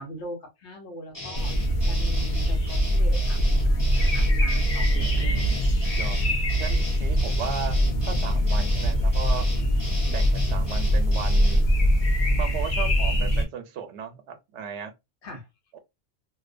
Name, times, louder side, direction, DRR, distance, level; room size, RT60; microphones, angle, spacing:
voice 1, 0.0-1.5 1.9-5.2 15.2-15.4, equal, 80° left, 1.1 m, -41 dB
sound 1, 1.1-11.7, left 1 dB, 20° left, 1.2 m, -38 dB
sound 2, 1.3-13.4, equal, 50° left, 0.7 m, -23 dB
voice 2, 5.0-5.5 6.0-6.2 6.6-7.7 8.1-9.5 10.1-11.6 12.4-14.9 15.7-15.8, right 7 dB, 85° right, 0.9 m, -36 dB
2.6 x 2.1 x 2.4 m
omnidirectional pair, 1.2 m